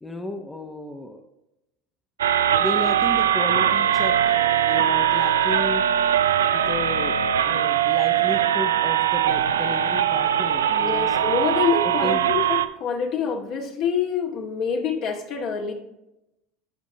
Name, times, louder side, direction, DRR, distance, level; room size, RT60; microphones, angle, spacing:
voice 1, 0.0-1.2 2.6-5.8 6.5-7.2 7.4-11.2 11.8-12.3, left 2 dB, 10° left, 3 dB, 0.9 m, -33 dB
sound 1, 2.2-12.7, right 10 dB, 85° right, 0.4 m, -21 dB
voice 2, 10.7-15.7, left 6 dB, 55° left, 1 dB, 1.8 m, -26 dB
12.0 x 5.1 x 2.9 m, 0.89 s
hypercardioid pair, 80°, 0 cm